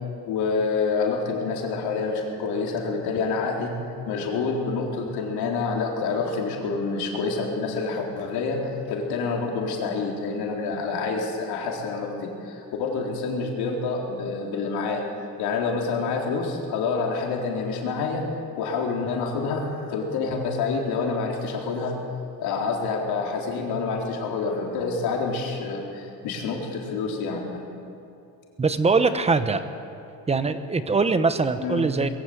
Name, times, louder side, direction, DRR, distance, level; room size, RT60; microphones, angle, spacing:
voice 1, 0.3-3.8 4.0-15.1 15.4-18.2 18.6-22.0 22.4-27.6 31.6-31.8, left 4 dB, 70° left, 0 dB, 4.0 m, -27 dB
voice 2, 28.6-29.6 30.3-32.1, right 4 dB, 15° right, 10 dB, 0.9 m, -22 dB
21.5 x 16.0 x 8.0 m, 2.7 s
cardioid pair, 150°, 39 cm